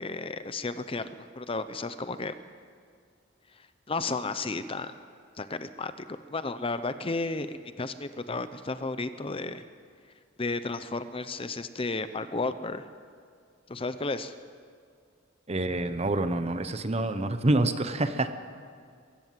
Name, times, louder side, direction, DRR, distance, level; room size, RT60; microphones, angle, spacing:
voice 1, 0.0-2.3 3.9-4.9 5.4-9.7 10.4-12.9 13.7-14.3, left 3 dB, 30° left, 12 dB, 0.7 m, -33 dB
voice 2, 15.5-18.3, right 2 dB, 35° right, 10 dB, 1.0 m, -27 dB
22.0 x 16.0 x 7.6 m, 2.2 s
head